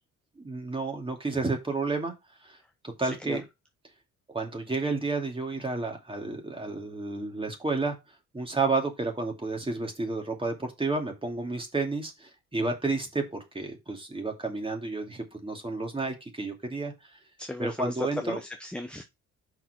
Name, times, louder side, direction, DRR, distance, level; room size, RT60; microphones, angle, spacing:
voice 1, 0.4-2.1 2.4-2.6 3.0-3.4 4.3-8.0 8.3-17.2 17.6-18.4, right 3 dB, 15° right, 2.6 m, -31 dB
voice 2, 17.4-19.0, left 1 dB, 5° left, 0.8 m, -35 dB
5.7 x 4.6 x 6.1 m
cardioid pair, 90°, 30 cm